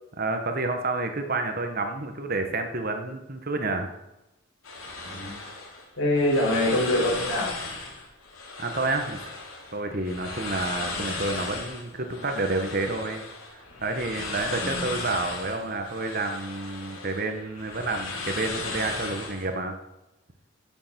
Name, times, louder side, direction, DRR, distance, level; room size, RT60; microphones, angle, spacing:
voice 1, 0.2-3.9 8.6-9.3 9.7-13.2 13.5-19.7, right 2 dB, 45° right, 5 dB, 1.4 m, -29 dB
sound 1, 4.6-19.5, left 3 dB, 80° left, 3.2 m, -36 dB
voice 2, 6.0-7.5 14.6-14.8, left 1 dB, 65° left, -4 dB, 6.3 m, -24 dB
15.0 x 7.1 x 7.0 m, 0.94 s
head